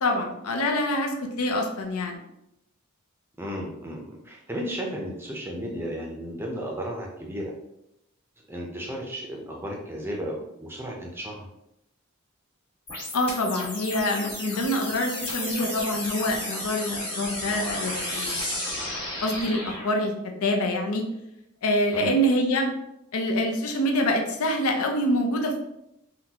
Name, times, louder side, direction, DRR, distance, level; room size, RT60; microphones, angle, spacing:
voice 1, 0.0-2.2 13.1-18.6 19.2-21.0 21.6-22.7 23.1-25.6, left 1 dB, 90° left, 3 dB, 0.6 m, -26 dB
voice 2, 3.4-7.5 8.5-11.5 21.9-22.1, equal, 10° right, -1 dB, 0.5 m, -34 dB
sound 1, 12.9-19.9, left 1 dB, 25° left, 1.3 m, -33 dB
3.7 x 2.2 x 2.8 m, 0.84 s
head